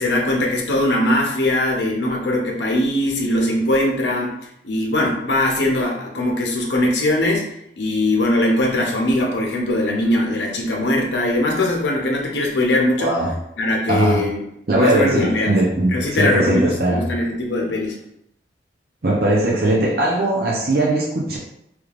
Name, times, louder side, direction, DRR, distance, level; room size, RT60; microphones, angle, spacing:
voice 1, 0.0-4.3 4.6-13.1 13.6-14.5 14.7-15.6 15.9-18.0, left 1 dB, 80° left, 0 dB, 0.7 m, -20 dB
voice 2, 13.0-13.3 13.9-14.2 14.7-17.1 19.0-21.4, right 1 dB, 55° right, -3 dB, 0.6 m, -19 dB
3.4 x 3.1 x 2.4 m, 0.76 s
head